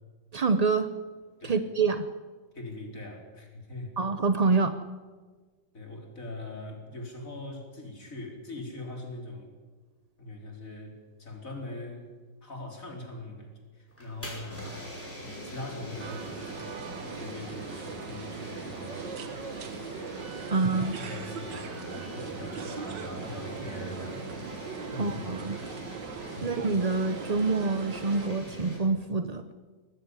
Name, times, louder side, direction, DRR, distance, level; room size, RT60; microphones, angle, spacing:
voice 1, 0.3-0.9 1.4-2.1 4.0-4.8 20.5-21.0 25.0-25.6 26.4-29.4, right 4 dB, 50° right, 10 dB, 0.4 m, -26 dB
voice 2, 2.5-3.9 5.7-9.5 10.2-12.1 12.4-14.7 15.2-19.1 19.9-24.5 24.9-25.3 26.4-26.5, left 1 dB, 50° left, 2 dB, 4.3 m, -42 dB
sound 1, 13.9-28.8, equal, 5° left, 5.3 m, -42 dB
sound 2, 16.0-28.3, right 6 dB, 85° right, 2.0 m, -40 dB
20.5 x 14.5 x 9.8 m, 1.4 s
omnidirectional pair, 1.9 m